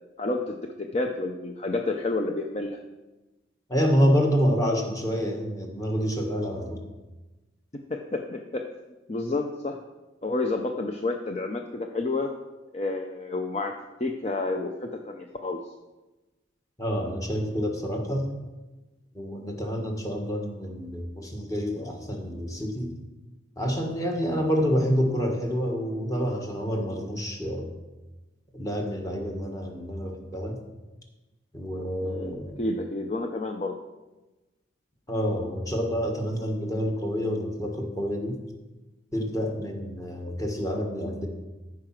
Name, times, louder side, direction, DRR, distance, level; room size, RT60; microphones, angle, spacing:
voice 1, 0.2-2.8 7.9-8.6 9.1-9.8 10.2-12.3 12.7-13.7 14.0-15.6 32.0-33.8, left 2 dB, 35° left, 3 dB, 0.6 m, -30 dB
voice 2, 3.7-6.8 16.8-18.3 19.1-22.9 23.6-27.7 28.5-30.6 31.5-32.6 35.1-38.4 39.1-41.3, equal, 20° left, 1 dB, 1.5 m, -28 dB
14.0 x 4.9 x 5.9 m, 1.1 s
head